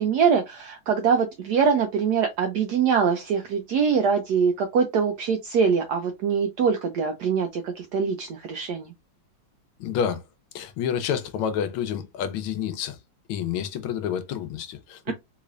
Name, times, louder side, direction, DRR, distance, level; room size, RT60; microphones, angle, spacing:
voice 1, 0.0-8.9 15.1-15.2, right 6 dB, 80° right, 0.9 m, -23 dB
voice 2, 9.8-10.2 10.5-13.0 13.3-15.1, left 8 dB, 90° left, 1.5 m, -29 dB
3.7 x 3.2 x 2.4 m
omnidirectional pair, 2.2 m